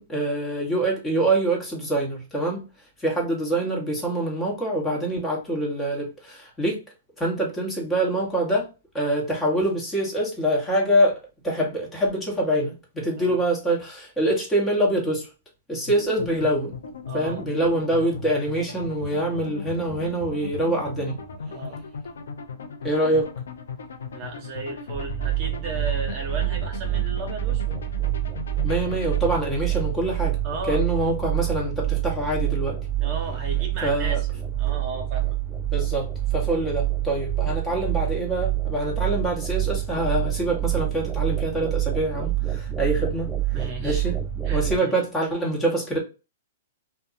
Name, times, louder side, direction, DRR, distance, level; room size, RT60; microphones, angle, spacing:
voice 1, 0.0-2.6 3.0-6.8 7.2-8.7 8.9-11.2 11.4-15.3 15.7-16.7 17.1-21.2 22.8-23.3 28.6-30.4 30.7-32.8 33.8-34.2 35.7-43.3 43.8-44.2 44.5-46.0, right 1 dB, 15° left, 1.1 m, -25 dB
sound 1, 15.9-29.4, left 5 dB, 75° left, 0.5 m, -37 dB
voice 2, 17.1-17.4 21.5-21.8 24.1-27.8 30.4-30.8 33.0-35.4 43.5-44.0 44.4-44.9, right 2 dB, 40° right, 0.9 m, -35 dB
sound 2, 24.9-44.8, right 13 dB, 10° right, 0.3 m, -27 dB
2.7 x 2.2 x 2.4 m
hypercardioid pair, 125°, 0 cm